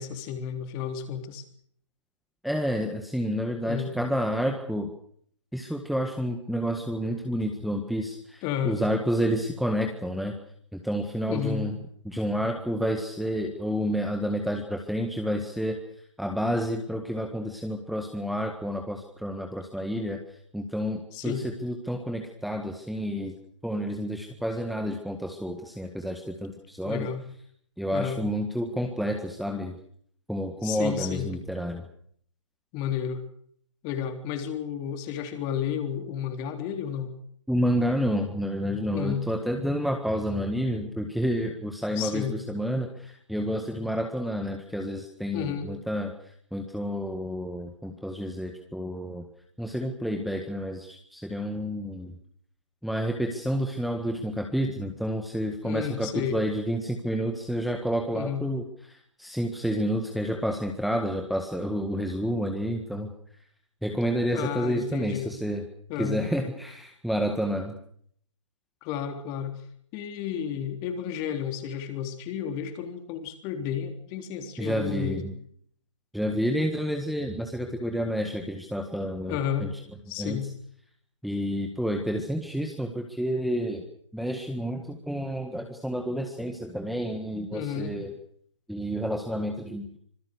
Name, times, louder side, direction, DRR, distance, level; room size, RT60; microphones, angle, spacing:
voice 1, 0.0-1.4 3.7-4.0 8.4-8.8 11.3-11.6 21.1-21.5 26.8-27.2 27.9-28.2 30.6-31.3 32.7-33.2 33.8-37.1 38.9-39.2 42.0-42.3 45.3-45.7 55.6-56.4 58.1-58.4 64.3-65.3 65.9-66.2 68.8-69.6 69.9-75.2 79.3-79.7 80.1-80.5 87.5-88.0, left 8 dB, 25° left, 6 dB, 3.6 m, -32 dB
voice 2, 2.4-4.9 5.5-10.4 10.7-11.8 12.0-15.8 16.2-20.2 20.5-23.4 23.6-27.1 27.8-29.8 30.3-31.9 37.5-49.2 49.6-52.1 52.8-63.1 63.8-65.6 66.0-67.8 74.6-75.3 76.1-79.7 80.2-80.4 81.2-83.8 84.1-88.1 88.7-90.0, equal, ahead, 3 dB, 1.7 m, -29 dB
26.0 x 20.0 x 6.7 m, 0.63 s
hypercardioid pair, 140°, 16 cm